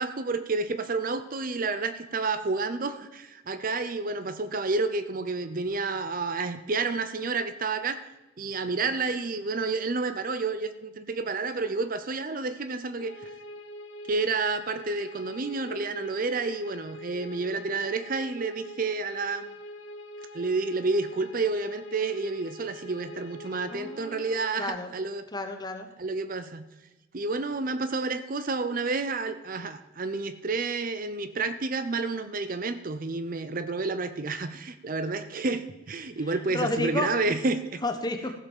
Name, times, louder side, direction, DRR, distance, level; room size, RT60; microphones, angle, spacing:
voice 1, 0.0-8.0 8.4-13.3 14.1-19.5 20.3-25.3 26.0-26.6 27.1-37.8, right 3 dB, 40° right, 11 dB, 0.6 m, -30 dB
sound 1, 13.0-24.7, equal, 70° left, 1.2 m, -43 dB
voice 2, 23.7-24.9 25.3-25.9 36.3-37.3 37.8-38.3, left 2 dB, 20° left, 6 dB, 1.0 m, -32 dB
15.0 x 5.8 x 7.2 m, 1.0 s
head